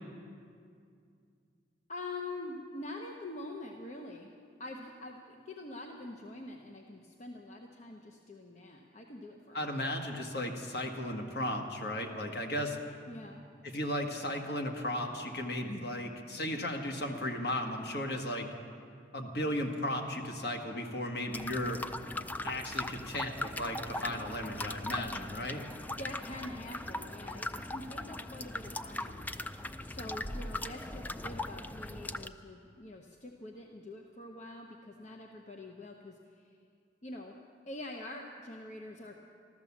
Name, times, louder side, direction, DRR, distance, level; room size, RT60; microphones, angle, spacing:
voice 1, 1.9-4.3 4.6-9.7 13.1-13.4 26.0-36.5 37.0-37.4 37.7-39.1, left 2 dB, 40° left, 1 dB, 0.9 m, -45 dB
voice 2, 9.5-12.8 13.6-18.5 19.1-21.8 22.4-25.6, left 1 dB, 60° left, 3 dB, 1.6 m, -35 dB
sound 1, 21.3-32.3, left 2 dB, 10° left, 0.3 m, -39 dB
14.0 x 13.5 x 7.2 m, 2.3 s
head